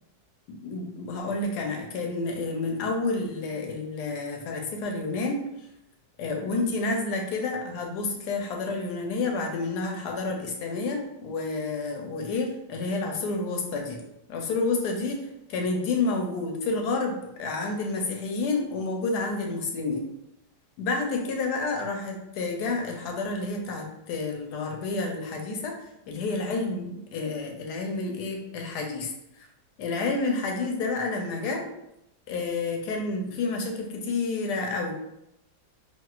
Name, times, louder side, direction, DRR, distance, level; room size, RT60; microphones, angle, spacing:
voice 1, 0.5-5.4 6.2-14.0 14.3-20.1 20.8-25.8 26.1-29.1 29.8-31.7 32.3-34.9, left 3 dB, 75° left, 2 dB, 1.1 m, -29 dB
3.7 x 2.4 x 2.4 m, 0.81 s
omnidirectional pair, 1.8 m